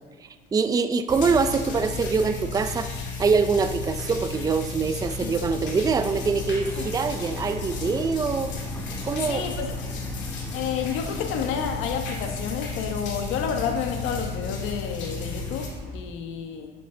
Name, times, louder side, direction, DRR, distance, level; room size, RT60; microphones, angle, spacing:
voice 1, 0.2-2.9 3.2-8.5 9.0-9.5, right 5 dB, 20° right, 9 dB, 0.4 m, -24 dB
sound 1, 1.1-15.7, left 4 dB, 65° left, 2.3 m, -33 dB
sound 2, 3.7-16.0, equal, 10° left, 1.8 m, -44 dB
voice 2, 9.2-9.8 10.5-16.7, left 7 dB, 90° left, 5 dB, 1.2 m, -30 dB
11.5 x 6.8 x 3.9 m, 1.4 s
cardioid pair, 130°, 20 cm